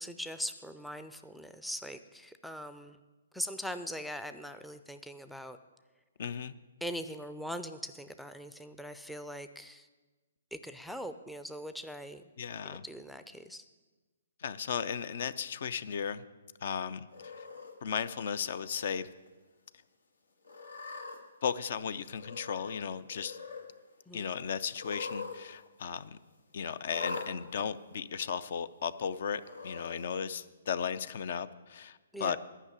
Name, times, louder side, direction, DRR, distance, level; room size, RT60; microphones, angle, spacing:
voice 1, 0.0-3.0 3.3-5.6 6.8-9.9 10.5-12.2 12.6-13.6 24.1-24.3 32.1-32.4, equal, ahead, 9 dB, 0.4 m, -41 dB
voice 2, 6.2-6.5 12.4-12.8 14.4-16.2 16.6-17.5 17.8-19.1 21.4-23.4 24.1-26.2 26.5-32.4, left 7 dB, 60° left, 16 dB, 0.5 m, -35 dB
Cat, 17.1-17.7 18.4-18.9 19.3-19.4 20.4-21.2 22.2-22.8 23.1-23.7 24.7-25.4 25.7-25.8 26.9-27.3 28.2-28.3 29.4-30.0, left 3 dB, 90° left, 1.8 m, -42 dB
11.0 x 5.9 x 8.4 m, 1.2 s
hypercardioid pair, 140°, 0 cm